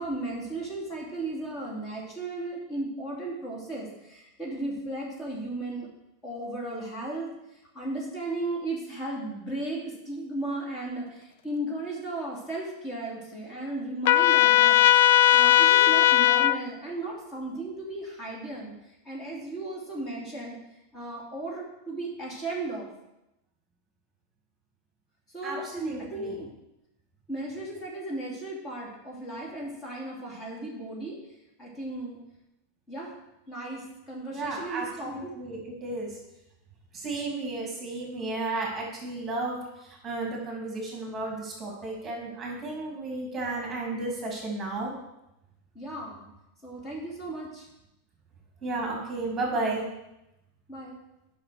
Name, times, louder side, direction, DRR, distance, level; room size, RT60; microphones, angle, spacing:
voice 1, 0.0-5.9 6.2-14.8 15.3-20.6 20.9-22.9 25.3-25.6 26.0-26.5 27.3-31.2 31.6-32.2 32.9-33.1 33.5-35.3 45.7-46.3 46.6-47.7 50.7-51.0, right 2 dB, 25° left, -3 dB, 2.8 m, -35 dB
Trumpet, 14.1-16.6, left 14 dB, 65° left, 0.3 m, -18 dB
voice 2, 25.4-26.4 34.3-36.2 36.9-44.9 48.6-49.8, right 2 dB, 15° right, -2 dB, 2.8 m, -33 dB
8.8 x 5.9 x 6.3 m, 0.89 s
supercardioid pair, 140°, 0 cm